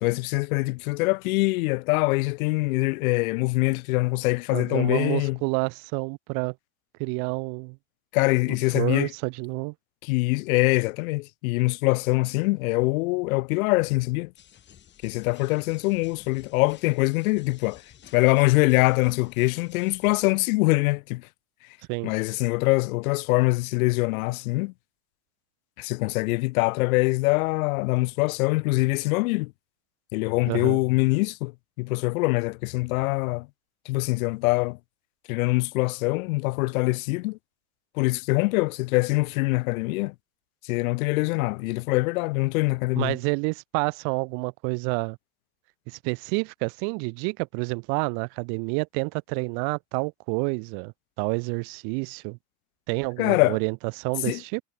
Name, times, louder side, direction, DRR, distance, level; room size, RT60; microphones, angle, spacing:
voice 1, 0.0-5.4 8.1-9.1 10.0-14.3 15.0-17.8 18.1-21.2 22.0-24.7 25.8-29.5 30.1-31.5 31.8-33.5 33.9-34.8 35.3-37.4 38.0-40.1 40.7-43.2 53.2-53.6 54.3-54.4, left 24 dB, 80° left, 1.2 m, -24 dB
voice 2, 4.5-6.5 7.0-7.8 8.7-9.7 21.9-22.1 30.5-30.8 43.0-45.2 45.9-52.4 52.9-54.6, right 40 dB or more, 55° right, 1.6 m, -29 dB
sound 1, 14.4-20.3, left 10 dB, 25° left, 4.6 m, -53 dB
cardioid pair, 170°, 42 cm